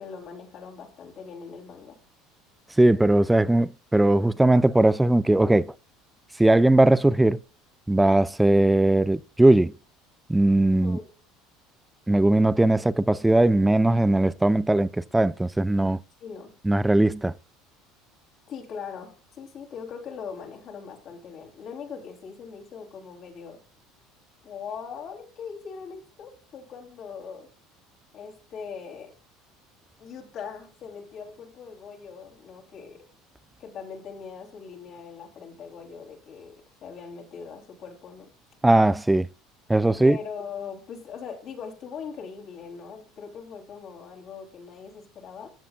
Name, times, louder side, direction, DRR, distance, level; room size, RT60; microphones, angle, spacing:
voice 1, 0.0-2.0 10.7-11.1 16.2-16.5 18.5-23.6 24.4-27.5 28.1-29.1 30.0-33.1 33.6-38.3 40.0-45.5, left 6 dB, 55° left, 3.2 m, -40 dB
voice 2, 2.8-5.7 6.4-7.4 7.9-9.7 10.3-11.0 12.1-16.0 16.7-17.3 38.6-39.3 39.7-40.2, right 1 dB, 10° right, 0.4 m, -19 dB
15.0 x 7.2 x 2.4 m
hypercardioid pair, 85°, 0 cm